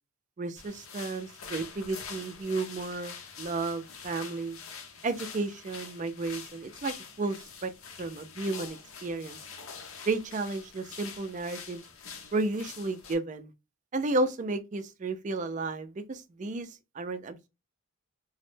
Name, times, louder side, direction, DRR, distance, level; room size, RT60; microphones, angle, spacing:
voice 1, 0.4-4.6 5.0-7.4 7.6-7.7 8.0-9.4 10.1-11.8 12.3-13.5 13.9-17.5, right 3 dB, 35° right, 0.3 m, -33 dB
sound 1, 0.6-13.1, left 6 dB, 70° left, 0.6 m, -45 dB
3.0 x 2.0 x 3.1 m
head